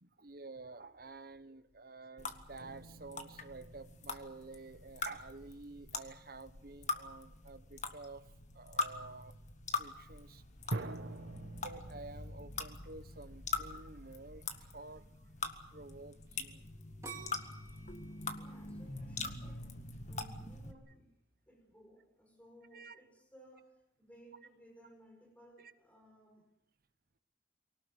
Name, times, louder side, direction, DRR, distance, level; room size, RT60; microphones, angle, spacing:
voice 1, 0.0-9.3 9.8-10.9 11.6-16.7 22.7-23.0, right 3 dB, 55° right, 12 dB, 1.2 m, -51 dB
sound 1, 2.2-20.7, left 4 dB, 40° left, 1.8 m, -43 dB
sound 2, 2.6-5.6 6.1-6.4 10.7-15.0, right 2 dB, 75° right, 1.5 m, -47 dB
sound 3, 17.0-19.9 20.4-20.9, right 5 dB, 15° right, 3.4 m, -51 dB
voice 2, 18.4-21.1 21.5-26.5, right 1 dB, 10° left, 2 dB, 4.9 m, -60 dB
24.5 x 18.5 x 8.3 m, 0.81 s
head